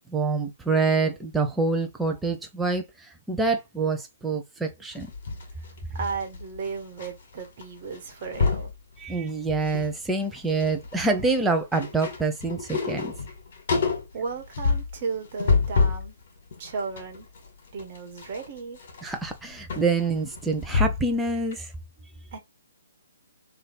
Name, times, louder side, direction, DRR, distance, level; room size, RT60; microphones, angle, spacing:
voice 1, 0.1-5.1 9.0-13.1 19.0-21.7, right 3 dB, 5° right, 0.8 m, -26 dB
sound 1, 4.9-7.1 7.4-7.6 7.9-8.7 9.3-9.9 10.2-16.1 16.5-21.2 21.5-21.6, left 4 dB, 50° left, 1.8 m, -28 dB
voice 2, 5.9-8.7 14.1-16.1 16.6-17.3 17.7-18.8 22.3-22.4, right 5 dB, 40° right, 1.4 m, -34 dB
3.3 x 2.7 x 4.0 m
figure-of-eight pair, 135°, 0 cm